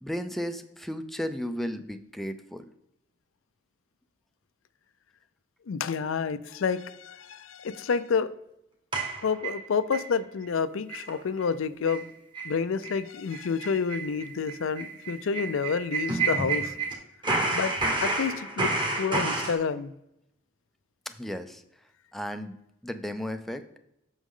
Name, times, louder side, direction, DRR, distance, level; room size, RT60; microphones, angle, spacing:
voice 1, 0.0-2.7 17.8-17.9 21.1-21.6 22.1-22.6 22.8-23.6, equal, ahead, 7 dB, 0.4 m, -34 dB
voice 2, 5.7-8.3 9.2-12.1 12.4-16.7 17.5-17.7 18.0-19.9, left 5 dB, 75° left, 14 dB, 0.4 m, -29 dB
sound 1, 8.9-10.1 10.4-10.5 10.9-11.1 11.4-11.5 11.9-12.0 12.3-12.5 12.8-13.0 13.3-16.9 17.2-19.6, right 3 dB, 25° right, 1.6 m, -29 dB
8.2 x 6.2 x 3.7 m, 0.82 s
head